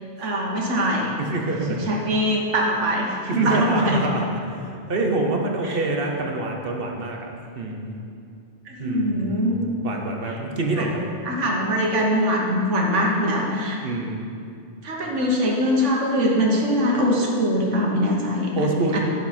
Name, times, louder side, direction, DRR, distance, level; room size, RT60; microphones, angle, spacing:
voice 1, 0.2-1.1 1.7-4.0 5.6-5.8 8.7-9.6 10.8-10.9 11.2-13.8 14.8-19.0, equal, 85° right, -1 dB, 1.6 m, -22 dB
voice 2, 1.2-1.8 3.3-7.3 7.5-8.0 8.8-9.5 9.8-11.0 13.8-14.3 18.5-19.0, right 2 dB, 55° right, 1 dB, 1.1 m, -26 dB
10.5 x 6.4 x 4.3 m, 2.4 s
omnidirectional pair, 1.2 m